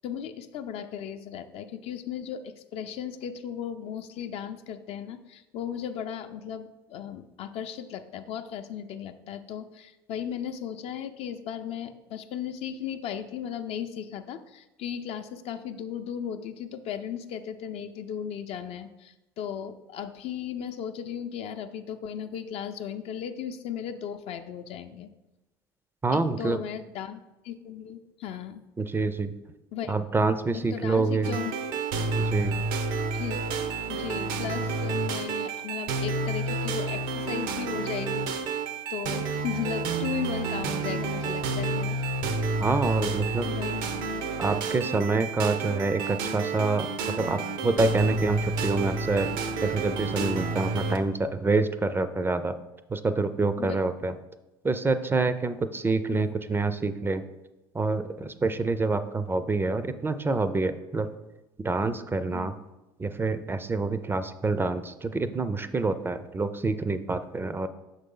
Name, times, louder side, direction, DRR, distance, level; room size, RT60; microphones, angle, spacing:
voice 1, 0.0-25.1 26.1-28.6 29.7-30.0 30.7-31.6 33.1-33.5 33.9-38.6 38.9-42.0 43.4-43.7 44.7-44.9 53.6-53.8 56.1-56.3 62.3-62.5, left 8 dB, 55° left, 8 dB, 0.5 m, -36 dB
voice 2, 26.0-26.6 28.8-29.3 29.9-31.4 32.2-32.6 42.6-43.5 44.4-49.3 49.6-52.6 52.9-54.1 54.6-57.2 57.7-61.1 61.6-62.6 63.0-67.7, right 3 dB, 20° right, 11 dB, 0.4 m, -27 dB
sound 1, 31.2-51.0, right 3 dB, 75° right, 0.6 m, -30 dB
6.3 x 4.0 x 3.8 m, 0.99 s
hypercardioid pair, 75°, 12 cm